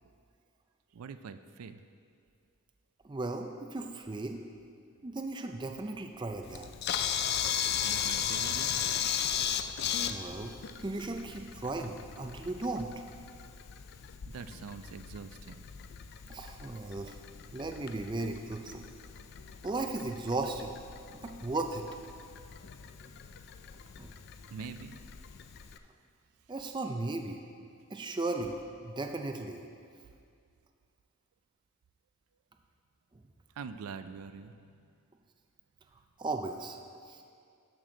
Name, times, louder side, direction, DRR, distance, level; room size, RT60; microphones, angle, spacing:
voice 1, 0.9-1.8 7.8-8.8 14.2-15.7 24.5-25.0 33.6-34.9, right 5 dB, 85° right, 11 dB, 0.4 m, -44 dB
voice 2, 3.0-4.4 5.0-6.7 10.1-10.5 10.8-12.9 16.3-17.2 17.5-18.9 19.6-20.7 21.1-21.9 24.0-24.1 26.5-27.4 27.9-29.7 36.2-36.8 37.1-37.2, right 2 dB, 20° right, 4 dB, 0.4 m, -36 dB
Camera, 6.4-25.8, left 9 dB, 45° left, 0.3 m, -37 dB
12.5 x 6.0 x 3.8 m, 2.3 s
head